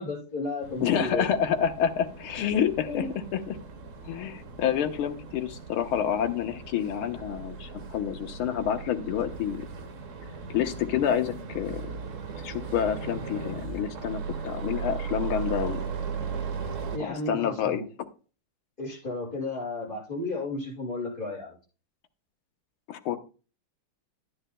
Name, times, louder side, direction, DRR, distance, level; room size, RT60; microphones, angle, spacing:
voice 1, 0.0-1.3 2.9-3.1 16.9-17.9 18.8-21.6, left 2 dB, 20° left, -4 dB, 6.4 m, -33 dB
sound 1, 0.6-17.0, right 5 dB, 50° right, 1.1 m, -37 dB
voice 2, 0.8-3.1 3.3-3.6 4.1-9.7 10.5-11.9 12.4-15.8 17.0-17.8 22.9-23.2, left 9 dB, 90° left, 7 dB, 1.9 m, -28 dB
12.5 x 10.0 x 2.2 m, 0.35 s
omnidirectional pair, 2.3 m